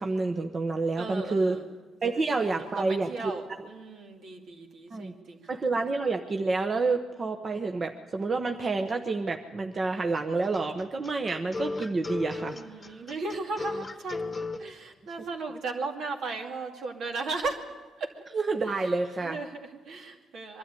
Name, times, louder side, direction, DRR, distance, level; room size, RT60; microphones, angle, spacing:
voice 1, 0.0-1.6 2.0-3.1 3.6-3.7 4.9-5.1 5.5-12.6 12.9-13.0 18.3-19.4, right 3 dB, 35° right, 5 dB, 1.0 m, -28 dB
voice 2, 1.0-1.6 2.1-5.5 12.5-14.3 14.6-18.1 18.6-18.9 19.2-20.6, right 3 dB, 70° right, 2 dB, 2.5 m, -36 dB
sound 1, 10.4-14.6, left 3 dB, 25° left, 1.1 m, -35 dB
23.0 x 12.5 x 9.2 m, 1.3 s
cardioid pair, 90°, 0 cm